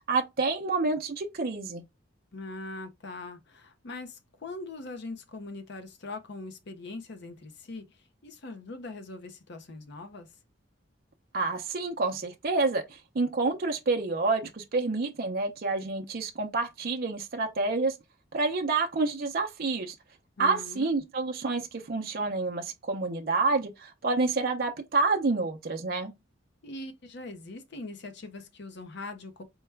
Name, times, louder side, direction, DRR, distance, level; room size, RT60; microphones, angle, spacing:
voice 1, 0.1-1.8 11.3-18.0 18.3-19.9 20.4-26.1, right 3 dB, 50° right, 0.5 m, -28 dB
voice 2, 2.3-10.3 20.4-20.9 26.6-29.4, left 2 dB, 60° left, 0.7 m, -41 dB
4.6 x 2.2 x 3.3 m
head